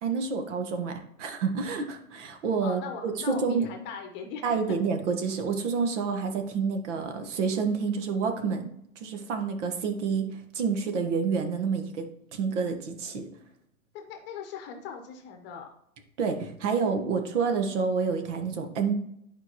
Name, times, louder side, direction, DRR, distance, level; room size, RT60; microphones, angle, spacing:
voice 1, 0.0-3.7 4.4-8.7 9.0-12.1 12.3-13.3 16.2-18.9, right 5 dB, 55° right, 6 dB, 1.4 m, -28 dB
voice 2, 2.6-4.8 13.9-15.7, left 6 dB, 25° left, 5 dB, 1.0 m, -40 dB
10.5 x 4.8 x 3.0 m, 0.75 s
hypercardioid pair, 135°, 44 cm